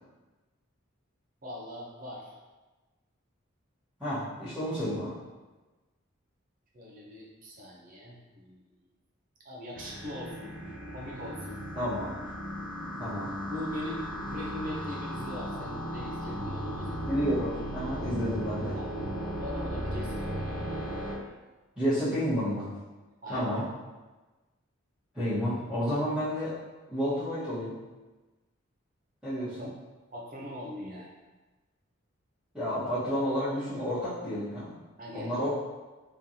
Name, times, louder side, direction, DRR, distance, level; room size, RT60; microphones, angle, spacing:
voice 1, 1.4-2.4 4.5-4.7 6.7-8.6 9.4-10.5 10.9-11.6 13.5-17.2 18.7-19.0 19.3-20.6 23.2-23.5 29.6-29.7 30.1-31.1 35.0-35.3, left 1 dB, 40° right, -3 dB, 0.8 m, -41 dB
voice 2, 4.0-5.1 11.7-12.1 13.0-13.3 17.1-18.8 21.8-22.7 23.3-23.6 25.1-26.6 26.9-27.7 29.2-29.7 32.5-34.8 35.1-35.5, equal, 5° right, -18 dB, 1.3 m, -30 dB
sound 1, 9.7-21.1, equal, 70° right, 0.8 m, -36 dB
3.8 x 3.4 x 2.8 m, 1.2 s
head